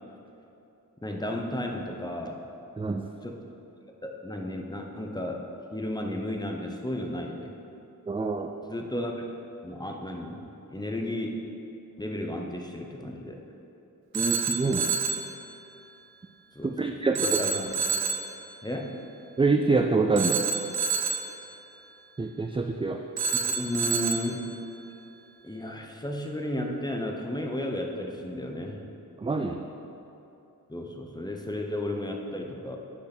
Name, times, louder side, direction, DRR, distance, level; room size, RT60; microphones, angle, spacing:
voice 1, 1.0-2.5 3.2-3.4 4.0-7.5 8.7-9.1 9.6-10.4 10.7-11.4 12.0-13.4 16.5-17.7 18.6-19.0 23.4-24.5 25.4-28.8 30.7-32.8, left 1 dB, 10° left, 2 dB, 0.8 m, -33 dB
voice 2, 2.8-3.1 8.1-8.5 14.1-15.0 16.6-17.2 19.4-20.4 22.2-23.0 29.2-29.6, right 3 dB, 15° right, 4 dB, 0.3 m, -26 dB
Telephone, 14.1-15.3 17.1-18.3 20.2-21.3 23.2-24.3, right 5 dB, 90° right, 0.8 m, -28 dB
8.8 x 6.3 x 6.0 m, 2.9 s
wide cardioid pair, 135°, 37 cm